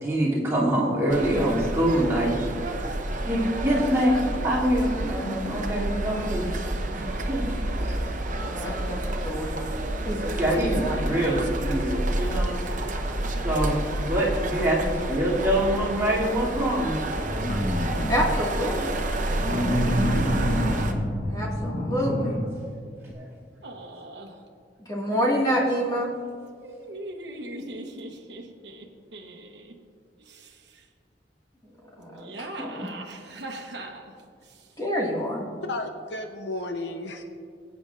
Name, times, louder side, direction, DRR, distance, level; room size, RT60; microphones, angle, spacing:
voice 1, 0.0-2.6 3.3-6.5 6.9-8.0 10.4-12.6 13.4-17.0 23.1-23.3, right 1 dB, 15° right, -8 dB, 2.8 m, -25 dB
sound 1, 1.1-20.9, right 1 dB, 50° right, 0.8 m, -29 dB
voice 2, 8.5-9.7 10.0-11.0 18.1-19.0 21.2-22.4 24.8-26.1 31.6-32.9 34.8-35.5, equal, 20° left, -4 dB, 1.9 m, -28 dB
sound 2, 17.2-18.4 19.3-22.5 23.1-23.2, equal, 40° left, 1.1 m, -27 dB
sound 3, 23.6-24.4 25.1-25.7 26.6-29.8 30.2-30.8 32.0-34.7, right 1 dB, 75° right, 1.0 m, -40 dB
voice 3, 35.6-37.2, left 2 dB, 80° left, 5 dB, 0.8 m, -33 dB
22.0 x 8.7 x 2.5 m, 2.2 s
head